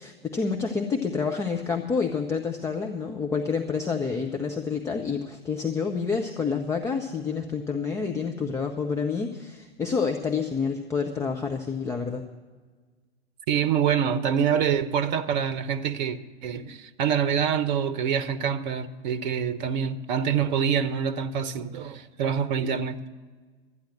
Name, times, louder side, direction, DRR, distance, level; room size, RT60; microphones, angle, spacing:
voice 1, 0.0-12.2, left 5 dB, 10° left, 0.6 m, -28 dB
voice 2, 13.5-23.1, right 8 dB, 45° right, 0.8 m, -26 dB
13.0 x 9.7 x 7.4 m
figure-of-eight pair, 100°, 30 cm